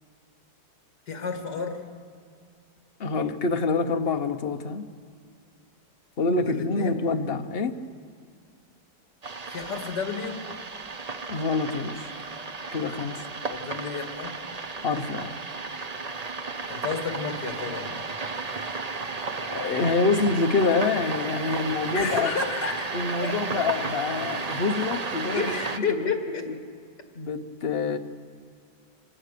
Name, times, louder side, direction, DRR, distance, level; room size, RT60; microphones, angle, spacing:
voice 1, 1.1-1.8 6.4-7.0 9.5-10.4 13.5-14.4 16.7-18.1 21.9-23.4 25.3-26.5, left 5 dB, 65° left, 4 dB, 2.6 m, -31 dB
voice 2, 3.0-4.9 6.2-7.8 11.3-12.1 12.7-13.2 14.8-15.4 19.4-22.3 22.9-25.5 25.9-26.1 26.5-26.6 27.1-28.0, left 4 dB, 40° left, 7 dB, 0.9 m, -26 dB
sound 1, 9.2-25.8, right 4 dB, 50° right, 0.4 m, -33 dB
26.5 x 16.5 x 6.8 m, 2.2 s
omnidirectional pair, 1.9 m